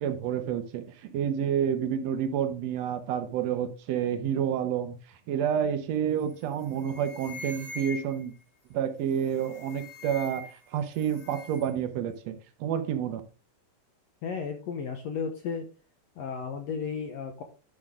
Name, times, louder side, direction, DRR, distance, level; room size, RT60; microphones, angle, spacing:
voice 1, 0.0-4.9 5.3-8.3 8.7-13.2, right 8 dB, 85° right, 8 dB, 1.5 m, -29 dB
sound 1, 6.2-6.4 6.7-8.4 9.2-10.7 10.9-11.7, left 3 dB, 35° left, 1.2 m, -43 dB
voice 2, 14.2-15.7 16.2-17.4, left 6 dB, 80° left, 5 dB, 1.5 m, -34 dB
11.0 x 6.1 x 3.6 m, 0.34 s
omnidirectional pair, 4.2 m